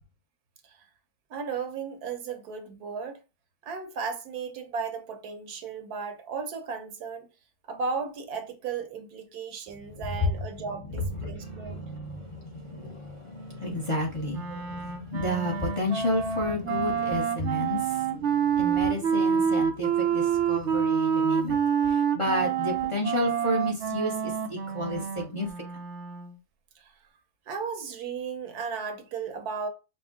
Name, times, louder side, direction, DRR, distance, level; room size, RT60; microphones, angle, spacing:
voice 1, 1.3-3.2 3.6-7.3 7.7-11.8 26.8-26.9 27.5-29.7, right 5 dB, 80° right, 1.4 m, -35 dB
voice 2, 11.0-18.3 18.6-21.6 21.9-25.5, left 1 dB, 25° left, 0.7 m, -31 dB
Wind instrument woodwind instrument, 14.3-26.4, right 7 dB, 60° right, 0.8 m, -27 dB
5.3 x 2.2 x 3.6 m
omnidirectional pair, 1.6 m